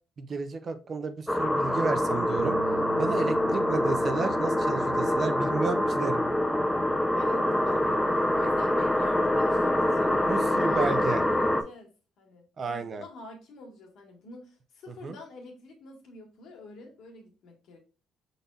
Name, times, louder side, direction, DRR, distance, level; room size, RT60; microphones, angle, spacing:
voice 1, 0.2-2.6 3.0-6.3 10.2-11.2 12.6-13.0 15.0-15.2, right 4 dB, 40° right, 9 dB, 0.6 m, -32 dB
sound 1, 1.3-11.6, left 1 dB, 10° left, 0.5 m, -25 dB
Bass guitar, 2.4-8.6, right 11 dB, 85° right, 0.4 m, -45 dB
voice 2, 7.1-10.2 10.5-11.9 12.2-17.8, left 3 dB, 75° left, 1 dB, 1.7 m, -46 dB
5.4 x 4.0 x 2.3 m, 0.34 s
cardioid pair, 125°, 0 cm